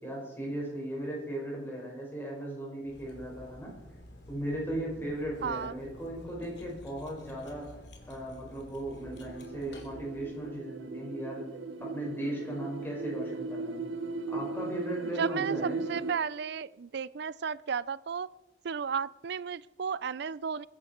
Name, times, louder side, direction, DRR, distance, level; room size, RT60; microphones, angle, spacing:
voice 1, 0.0-3.7 4.3-7.7 8.1-11.4 11.8-13.9 14.3-15.8, right 1 dB, 10° left, -3 dB, 5.4 m, -37 dB
Cutlery silverware, 2.8-10.6, left 1 dB, 65° left, 2.9 m, -51 dB
voice 2, 5.4-5.8 15.2-18.3 18.6-20.7, right 6 dB, 60° right, 20 dB, 0.4 m, -34 dB
sound 1, 9.0-16.1, right 3 dB, 85° right, 1.0 m, -37 dB
22.0 x 11.0 x 4.5 m, 1.0 s
head